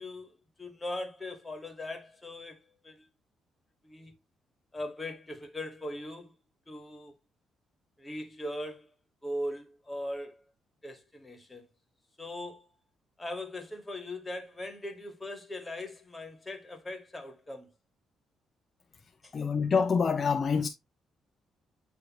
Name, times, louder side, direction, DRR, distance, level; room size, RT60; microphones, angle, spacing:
voice 1, 0.0-3.1 3.8-4.1 4.7-6.4 6.7-7.1 8.0-8.9 9.2-10.4 10.8-11.7 12.2-12.7 13.2-17.7 19.2-19.3, left 1 dB, 15° left, 2.0 m, -40 dB
voice 2, 19.3-20.7, left 5 dB, 40° left, 0.7 m, -26 dB
9.2 x 3.4 x 3.1 m
cardioid pair, 90°, 0 cm